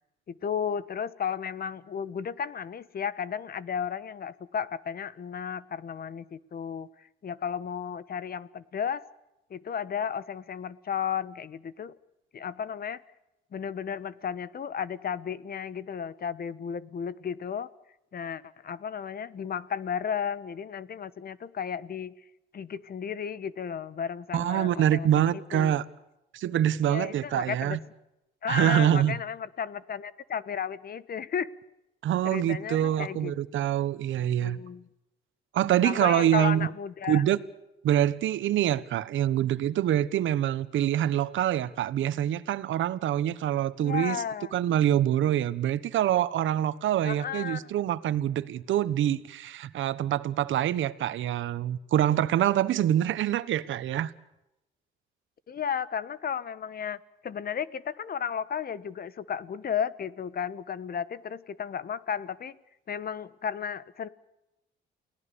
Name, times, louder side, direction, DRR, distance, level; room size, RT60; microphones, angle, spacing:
voice 1, 0.4-6.9 7.2-9.0 9.5-11.9 12.3-13.0 13.5-17.7 18.1-22.1 22.5-25.7 26.8-27.8 28.4-31.5 32.2-33.3 34.4-34.9 35.8-37.2 43.8-44.5 47.0-47.7 55.5-57.0 57.2-62.6 62.9-64.1, left 7 dB, 50° left, 1.3 m, -34 dB
voice 2, 24.3-25.8 26.3-27.8 28.5-29.2 32.0-34.6 35.5-36.7 37.1-37.4 37.8-44.2 44.5-54.1, right 11 dB, 75° right, 1.3 m, -25 dB
29.5 x 18.0 x 7.0 m
cardioid pair, 90°, 20 cm